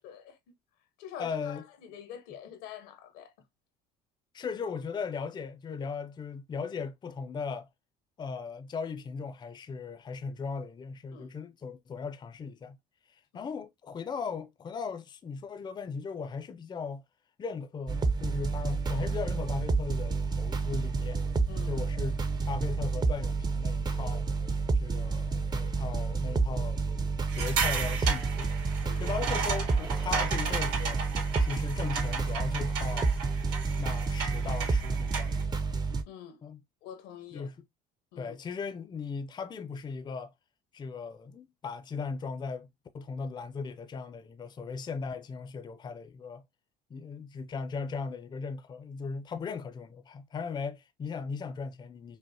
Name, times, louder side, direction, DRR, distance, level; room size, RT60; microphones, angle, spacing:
voice 1, 0.0-0.5 1.0-3.3 11.1-11.3 13.3-13.5 21.5-21.8 28.8-29.1 36.1-36.4 36.8-37.5 38.1-38.3, left 8 dB, 85° left, 1.0 m, -46 dB
voice 2, 1.2-1.6 4.3-7.7 8.2-12.8 13.1-17.0 17.4-21.2 21.7-22.2 22.5-24.3 24.7-26.8 27.3-28.5 29.0-31.1 31.4-33.1 33.8-35.5 36.4-36.6 37.3-37.5 38.2-40.3 40.7-42.7 42.9-46.4 46.9-52.2, left 5 dB, 25° left, 0.5 m, -38 dB
sound 1, 17.9-36.0, right 4 dB, 25° right, 0.6 m, -30 dB
sound 2, 27.3-35.4, right 5 dB, 85° right, 2.1 m, -34 dB
5.2 x 2.1 x 2.7 m
supercardioid pair, 100°, 18 cm